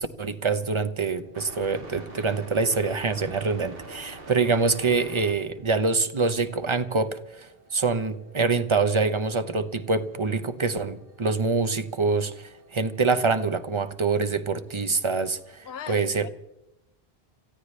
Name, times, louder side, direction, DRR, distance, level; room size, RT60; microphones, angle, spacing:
voice 1, 0.0-16.3, right 4 dB, 30° right, 0.9 m, -25 dB
sound 1, 0.6-15.6, right 2 dB, 65° right, 2.0 m, -48 dB
voice 2, 15.6-16.3, left 9 dB, 80° left, 1.0 m, -37 dB
28.0 x 15.0 x 3.3 m
omnidirectional pair, 1.0 m